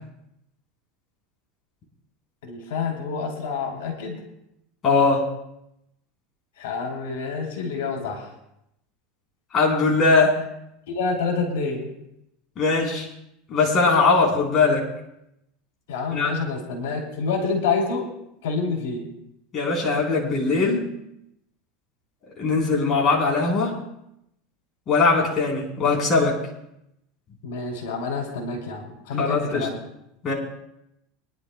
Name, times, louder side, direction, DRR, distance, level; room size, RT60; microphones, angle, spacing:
voice 1, 2.4-4.2 6.6-8.3 10.9-11.8 15.9-18.1 18.4-19.0 27.4-29.8, left 4 dB, 90° left, 1 dB, 3.1 m, -27 dB
voice 2, 4.8-5.2 9.5-10.3 12.6-13.1 13.5-14.9 16.1-16.3 19.5-20.9 22.4-23.7 24.9-26.4 29.2-29.7 30.2-30.3, left 4 dB, 30° left, -3 dB, 3.8 m, -20 dB
24.5 x 11.0 x 2.2 m, 0.82 s
supercardioid pair, 140°, 0 cm